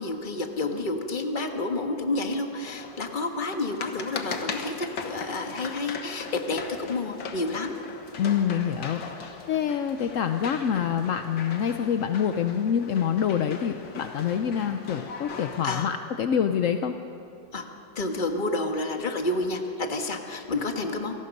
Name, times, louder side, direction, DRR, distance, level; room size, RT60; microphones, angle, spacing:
voice 1, 0.0-7.8 15.6-15.9 17.5-17.6 17.9-21.1, left 2 dB, 30° left, 4 dB, 1.5 m, -30 dB
sound 1, 2.6-15.7, left 5 dB, 80° left, 2.1 m, -39 dB
voice 2, 8.2-16.9, left 8 dB, 65° left, 7 dB, 0.8 m, -26 dB
28.0 x 18.5 x 5.4 m, 2.7 s
omnidirectional pair, 2.0 m